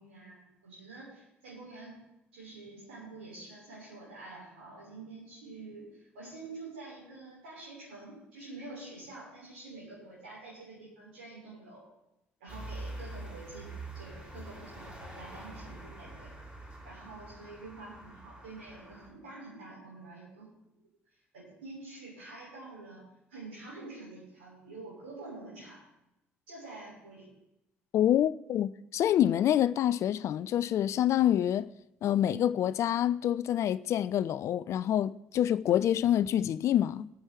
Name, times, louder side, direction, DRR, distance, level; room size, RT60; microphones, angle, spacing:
voice 1, 0.0-2.0 2.3-11.8 12.4-16.3 16.8-20.5 21.3-23.0 23.3-25.8 26.5-27.3, right 2 dB, 75° right, 6.2 m, -47 dB
sound 1, 12.5-19.1, right 2 dB, 20° right, 4.8 m, -45 dB
voice 2, 27.9-31.7 32.0-37.1, left 11 dB, 50° left, 0.4 m, -27 dB
21.0 x 8.7 x 4.6 m
figure-of-eight pair, 50°, 6 cm